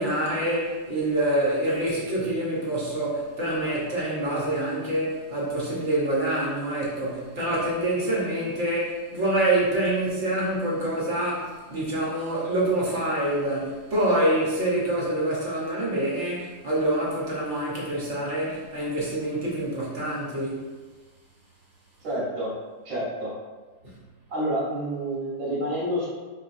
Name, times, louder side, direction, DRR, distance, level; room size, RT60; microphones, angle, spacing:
voice 1, 0.0-20.6 23.8-23.9, right 1 dB, 45° right, -5 dB, 1.2 m, -26 dB
voice 2, 22.0-22.5 22.9-23.3 24.3-26.1, right 1 dB, 85° right, -8 dB, 2.1 m, -28 dB
4.9 x 3.7 x 2.6 m, 1.4 s
omnidirectional pair, 2.1 m